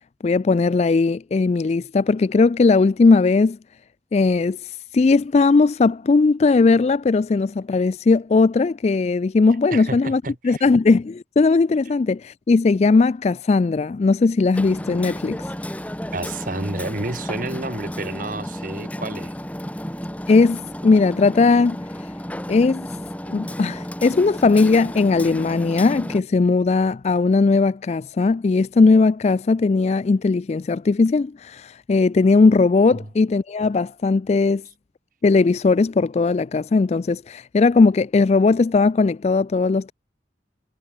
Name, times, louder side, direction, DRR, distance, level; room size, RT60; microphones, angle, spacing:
voice 1, 0.2-3.6 4.1-15.4 20.3-21.8 22.5-22.9 23.3-34.6 35.2-39.9, left 3 dB, 35° left, 0.3 m, -18 dB
voice 2, 9.7-10.6 16.1-19.3 32.9-33.1, right 2 dB, 45° right, 1.9 m, -30 dB
Hammer, 14.5-26.2, equal, 10° left, 1.4 m, -32 dB
head